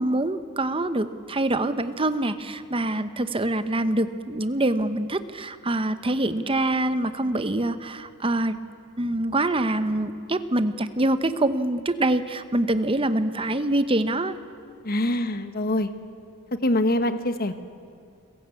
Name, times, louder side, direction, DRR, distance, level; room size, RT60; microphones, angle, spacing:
voice 1, 0.0-8.6 9.0-14.4, right 1 dB, 25° right, 11 dB, 1.0 m, -25 dB
voice 2, 14.8-15.9 16.6-17.6, left 1 dB, 45° left, 10 dB, 1.3 m, -24 dB
29.5 x 16.5 x 8.4 m, 2.5 s
head